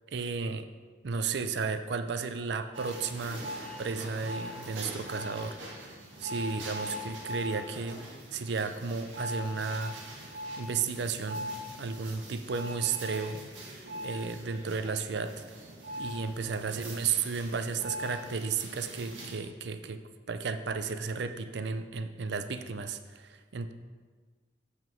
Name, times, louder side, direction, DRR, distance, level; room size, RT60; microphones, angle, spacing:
voice 1, 0.1-0.7 1.0-3.5 3.8-8.0 8.3-15.4 16.0-20.0 20.3-23.7, right 5 dB, 65° right, 10 dB, 0.5 m, -34 dB
sound 1, 2.7-19.3, equal, 85° right, 1.7 m, -41 dB
7.9 x 5.7 x 4.5 m, 1.4 s
head